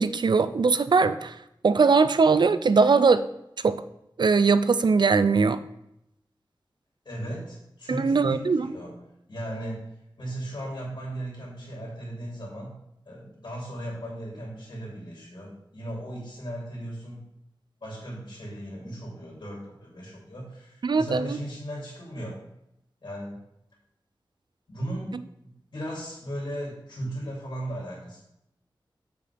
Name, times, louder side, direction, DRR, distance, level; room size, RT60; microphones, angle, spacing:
voice 1, 0.0-1.3 1.6-3.2 3.6-3.8 4.2-5.6 7.9-8.7 20.8-21.4, right 4 dB, 60° right, 13 dB, 0.4 m, -21 dB
voice 2, 7.0-9.0 9.3-9.9 10.2-12.7 13.1-17.2 17.8-22.4 23.0-23.4 24.7-25.1 25.4-28.2, right 1 dB, 65° left, -4 dB, 3.0 m, -36 dB
7.8 x 6.8 x 3.5 m, 0.81 s
wide cardioid pair, 80°, 8 cm